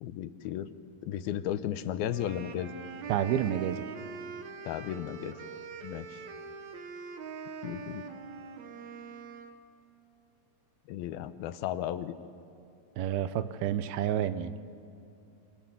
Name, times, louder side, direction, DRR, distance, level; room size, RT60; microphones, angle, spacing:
voice 1, 0.0-0.7 1.0-2.7 4.6-5.4 5.8-6.2 7.6-8.0 10.9-12.1, left 11 dB, 80° left, 12 dB, 2.7 m, -34 dB
sound 1, 2.1-9.6, right 5 dB, 60° right, 2.2 m, -43 dB
voice 2, 3.1-3.9 13.0-14.6, right 10 dB, 80° right, 12 dB, 2.7 m, -29 dB
27.5 x 26.0 x 7.2 m, 2.7 s
omnidirectional pair, 4.4 m